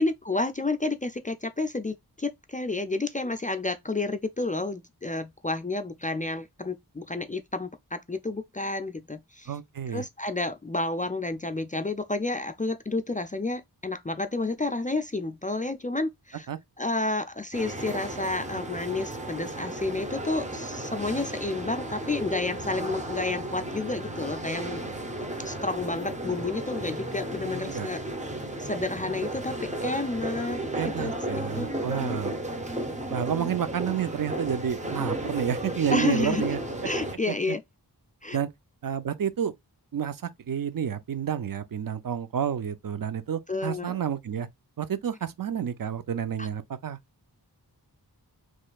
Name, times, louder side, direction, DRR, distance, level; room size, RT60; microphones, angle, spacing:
voice 1, 0.0-9.5 9.9-16.5 16.8-24.8 25.4-28.0 28.6-30.6 30.8-32.2 35.9-36.5 36.8-37.6 38.2-38.4 43.5-44.0 46.4-46.5, left 2 dB, 20° left, 0.3 m, -30 dB
voice 2, 9.5-10.0 16.5-16.6 27.7-27.9 30.7-32.3 33.1-36.6 37.3-37.5 38.3-38.5 38.8-39.5 39.9-44.5 44.8-47.0, right 8 dB, 55° right, 0.5 m, -30 dB
sound 1, 17.5-37.2, right 1 dB, 20° right, 0.7 m, -34 dB
4.2 x 3.0 x 2.3 m
wide cardioid pair, 80°, 40 cm